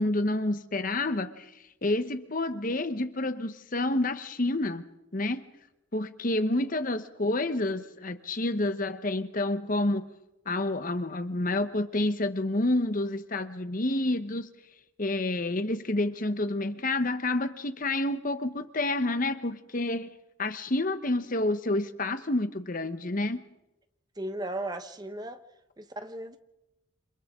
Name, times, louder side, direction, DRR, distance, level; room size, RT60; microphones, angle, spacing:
voice 1, 0.0-1.5 1.8-4.8 5.1-5.4 5.9-10.1 10.5-14.5 15.0-20.1 20.4-23.5, left 2 dB, 40° left, 1.0 m, -29 dB
voice 2, 24.2-25.4 25.8-26.4, right 1 dB, 20° right, 1.1 m, -36 dB
29.0 x 27.0 x 3.7 m
head